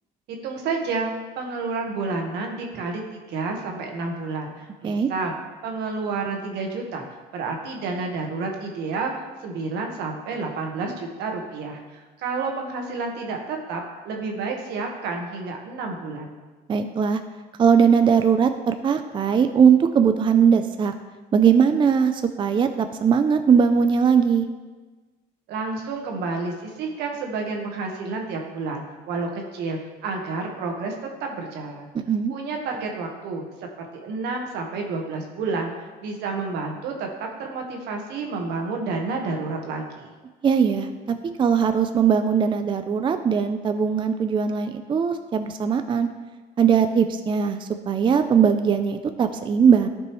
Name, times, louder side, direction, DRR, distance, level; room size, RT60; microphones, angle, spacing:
voice 1, 0.3-5.3 5.6-7.1 7.3-16.3 25.5-31.9 32.3-33.5 33.8-35.7 36.0-40.1, right 3 dB, 85° right, 2 dB, 1.4 m, -30 dB
voice 2, 16.7-17.2 17.6-20.9 21.3-24.5 31.9-32.3 40.4-46.1 46.6-49.9, right 7 dB, 30° right, 8 dB, 0.4 m, -20 dB
12.5 x 5.3 x 3.1 m, 1.3 s
cardioid pair, 110°, 17 cm